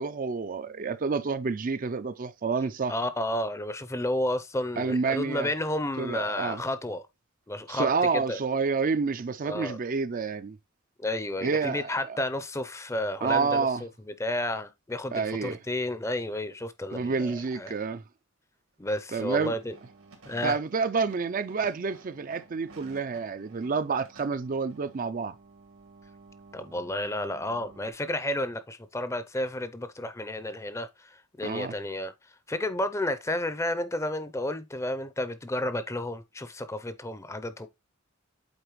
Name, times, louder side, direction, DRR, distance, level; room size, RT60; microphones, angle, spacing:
voice 1, 0.0-2.9 4.8-5.5 6.0-6.6 7.7-10.6 11.4-12.2 13.2-13.8 15.1-15.6 16.9-18.0 19.1-19.5 20.4-25.3 31.4-31.7, right 4 dB, 40° right, 0.4 m, -29 dB
voice 2, 2.9-7.0 7.5-7.9 8.1-8.4 9.4-9.8 11.0-17.7 18.8-19.8 20.3-20.6 26.5-32.1 32.5-37.7, left 1 dB, 15° left, 0.5 m, -31 dB
sound 1, 19.5-27.9, right 3 dB, 85° right, 2.1 m, -53 dB
8.1 x 4.2 x 3.0 m
head